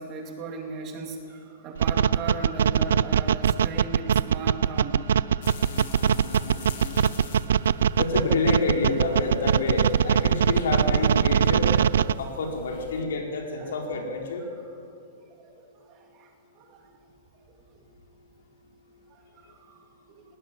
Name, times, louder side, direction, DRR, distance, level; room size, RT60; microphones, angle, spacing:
voice 1, 0.0-5.0 5.6-5.7 10.0-10.6 11.6-11.9 13.6-14.0 14.5-14.6 15.2-16.9 17.5-17.8 19.1-20.2, right 4 dB, 20° right, 2 dB, 2.4 m, -39 dB
sound 1, 1.8-12.1, right 8 dB, 80° right, 0.6 m, -21 dB
sound 2, 5.4-13.0, left 7 dB, 45° left, 2.3 m, -44 dB
voice 2, 8.0-11.7 12.2-14.5, left 3 dB, 80° left, 1 dB, 4.5 m, -28 dB
20.0 x 18.0 x 9.0 m, 2.5 s
supercardioid pair, 180°, 0 cm